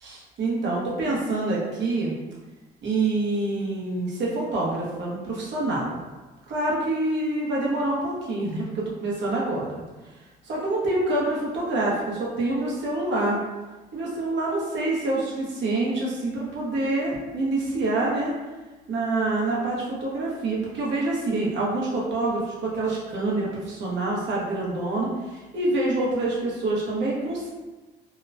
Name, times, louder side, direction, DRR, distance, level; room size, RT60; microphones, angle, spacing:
voice 1, 0.0-2.1 2.8-6.0 6.5-9.8 10.4-13.4 13.9-18.3 18.9-27.5, right 2 dB, 65° right, -4 dB, 0.8 m, -26 dB
2.9 x 2.1 x 2.5 m, 1.2 s
cardioid pair, 90°, 20 cm